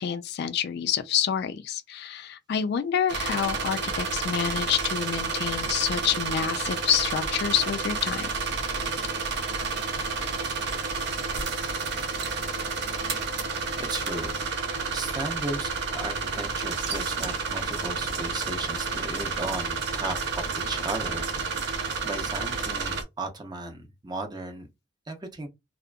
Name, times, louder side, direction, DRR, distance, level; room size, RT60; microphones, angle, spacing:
voice 1, 0.0-8.3, left 8 dB, 60° left, 0.3 m, -27 dB
sound 1, 3.1-23.0, right 4 dB, 60° right, 0.6 m, -30 dB
voice 2, 13.8-14.4 14.9-21.7 22.0-24.7 25.1-25.5, right 2 dB, 20° right, 0.6 m, -35 dB
2.7 x 2.4 x 2.2 m
head